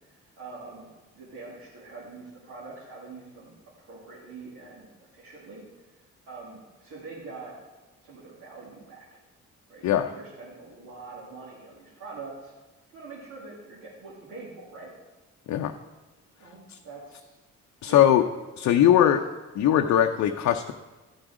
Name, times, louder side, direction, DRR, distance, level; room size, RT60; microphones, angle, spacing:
voice 1, 0.1-0.9 1.1-5.6 6.3-7.5 8.0-9.1 9.7-12.5 12.9-14.9 16.4-17.4 17.9-18.1 18.7-19.1, right 3 dB, 80° right, -7 dB, 2.7 m, -44 dB
voice 2, 17.8-18.2 18.6-19.2 19.6-20.7, left 11 dB, 70° left, 5 dB, 0.6 m, -20 dB
13.0 x 6.3 x 4.9 m, 1.2 s
cardioid pair, 90°, 30 cm